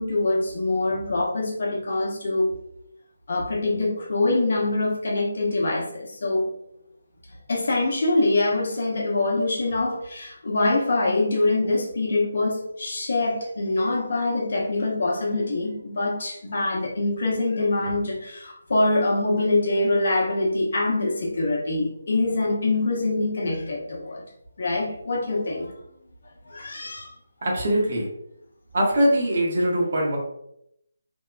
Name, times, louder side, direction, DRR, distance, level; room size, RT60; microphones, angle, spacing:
voice 1, 0.0-2.6 3.3-6.5 7.5-24.2 24.6-25.7 26.5-27.1, left 2 dB, 60° left, -2 dB, 0.8 m, -24 dB
voice 2, 27.4-28.1 28.7-30.2, equal, 55° right, -3 dB, 1.0 m, -22 dB
2.8 x 2.2 x 2.4 m, 0.76 s
figure-of-eight pair, 160°, 0 cm